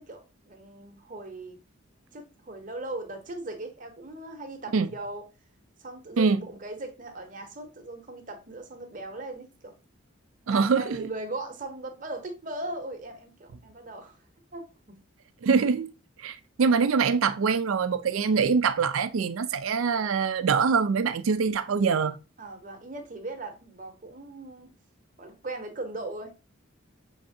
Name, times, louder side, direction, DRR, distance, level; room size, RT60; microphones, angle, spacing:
voice 1, 0.0-1.6 2.1-5.2 5.8-9.7 10.5-14.2 14.5-15.0 22.4-24.7 25.2-26.4, right 2 dB, 40° right, 0.8 m, -39 dB
voice 2, 10.5-11.0 15.4-15.9 16.2-22.2, right 5 dB, 90° right, 0.4 m, -24 dB
5.4 x 3.3 x 2.6 m
head